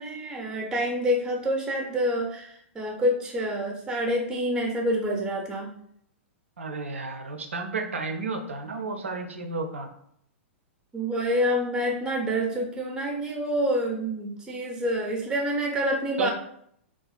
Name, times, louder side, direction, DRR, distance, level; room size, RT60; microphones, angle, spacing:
voice 1, 0.0-5.7 10.9-16.3, equal, 10° right, 0 dB, 0.5 m, -27 dB
voice 2, 6.6-9.9 16.2-16.3, right 3 dB, 80° right, 5 dB, 0.4 m, -32 dB
2.4 x 2.2 x 2.4 m, 0.69 s
hypercardioid pair, 110°, 7 cm